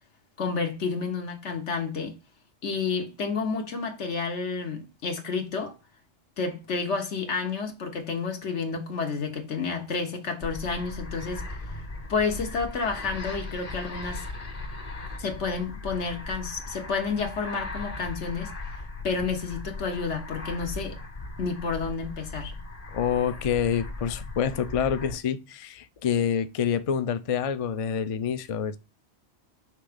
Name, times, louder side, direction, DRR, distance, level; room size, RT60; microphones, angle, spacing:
voice 1, 0.4-2.2 2.6-5.7 6.4-11.4 12.1-14.2 15.2-18.5 19.0-21.0 21.4-22.5, left 4 dB, 80° left, 1.5 m, -30 dB
sound 1, 10.4-25.1, left 2 dB, 35° left, 1.0 m, -38 dB
voice 2, 22.9-28.8, left 8 dB, 55° left, 0.4 m, -27 dB
5.9 x 3.5 x 5.0 m
omnidirectional pair, 1.2 m